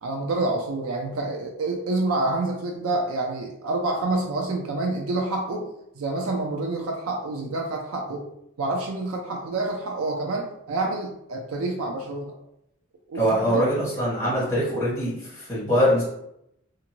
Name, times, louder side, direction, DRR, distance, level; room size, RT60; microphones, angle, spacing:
voice 1, 0.0-5.7 6.0-8.3 8.6-12.3 13.1-13.7, right 2 dB, 80° right, 1 dB, 0.4 m, -28 dB
voice 2, 13.2-16.0, equal, 10° left, -9 dB, 1.5 m, -23 dB
2.5 x 2.5 x 2.9 m, 0.79 s
head